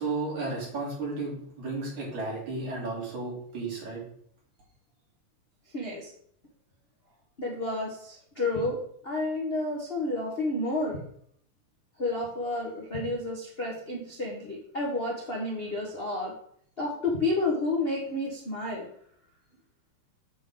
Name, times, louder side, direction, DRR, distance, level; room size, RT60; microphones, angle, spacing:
voice 1, 0.0-4.0, right 3 dB, 70° right, -5 dB, 4.4 m, -33 dB
voice 2, 5.7-6.1 7.4-11.0 12.0-16.3 16.8-18.9, left 2 dB, 60° left, -3 dB, 0.6 m, -30 dB
8.2 x 6.5 x 3.8 m, 0.64 s
omnidirectional pair, 3.4 m